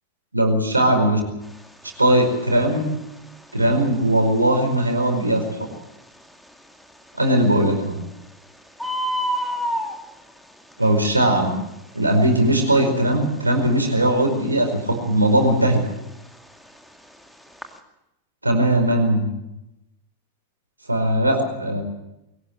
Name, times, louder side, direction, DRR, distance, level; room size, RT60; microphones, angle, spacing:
voice 1, 0.3-1.2 2.0-2.9 3.5-5.7 7.2-8.0 10.8-11.5 11.9-15.8 18.4-19.3 20.9-21.8, right 1 dB, 80° right, 5 dB, 4.9 m, -19 dB
Bird, 1.4-17.8, equal, ahead, 2.4 m, -34 dB
22.5 x 18.5 x 7.7 m, 0.90 s
figure-of-eight pair, 90°, 0 cm